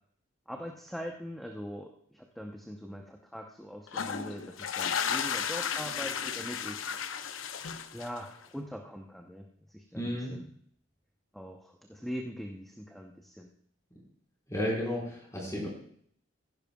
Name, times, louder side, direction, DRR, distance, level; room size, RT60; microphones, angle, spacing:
voice 1, 0.5-6.9 7.9-10.4 11.3-13.5, equal, ahead, 1 dB, 0.8 m, -42 dB
sound 1, 3.9-8.4, left 7 dB, 80° left, 0.7 m, -34 dB
voice 2, 9.9-10.4 14.5-15.7, equal, 15° left, -3 dB, 4.5 m, -32 dB
15.5 x 10.5 x 2.3 m, 0.62 s
head